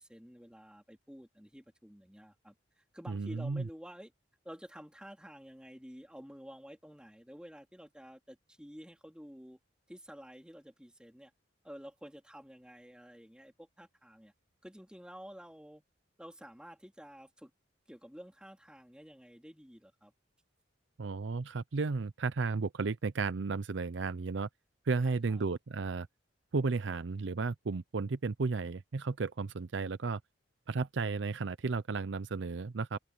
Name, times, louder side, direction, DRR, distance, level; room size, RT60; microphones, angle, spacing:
voice 1, 0.0-4.1 4.4-9.6 9.9-11.3 11.6-14.3 14.6-15.8 16.2-17.5 17.9-20.1 25.0-25.5, equal, 5° right, 3.4 m, -51 dB
voice 2, 3.1-3.7 21.0-24.5 24.9-26.1 26.5-30.2 30.7-33.0, right 4 dB, 70° right, 0.6 m, -33 dB
head